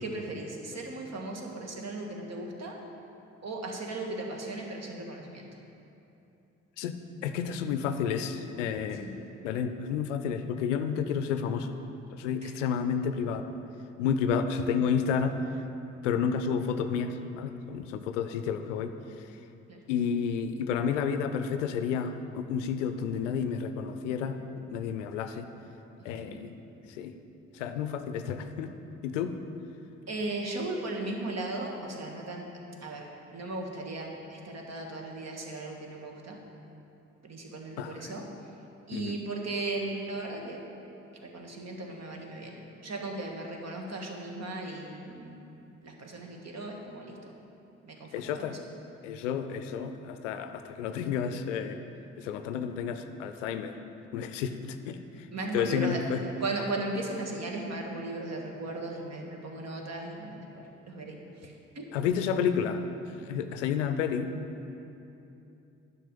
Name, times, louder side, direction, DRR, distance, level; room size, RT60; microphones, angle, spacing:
voice 1, 0.0-2.8 3.4-5.5 9.0-9.1 12.4-12.5 19.7-19.8 26.1-26.4 30.1-32.5 32.8-36.4 37.2-38.3 38.9-40.6 41.2-45.4 45.8-47.3 47.8-48.6 55.3-56.0 56.4-61.9, right 2 dB, 45° right, 1 dB, 1.6 m, -37 dB
voice 2, 6.8-9.1 9.4-11.8 12.1-13.5 14.0-15.3 16.0-19.3 19.9-24.4 24.7-25.5 26.0-26.5 26.9-27.1 27.5-28.7 29.0-29.4 37.8-38.1 38.9-39.2 48.1-48.6 49.0-51.8 52.2-53.7 54.1-55.3 55.5-56.2 61.9-62.9 63.2-64.3, left 7 dB, 80° left, 9 dB, 0.5 m, -31 dB
10.5 x 6.0 x 5.2 m, 2.9 s
figure-of-eight pair, 40°, 37 cm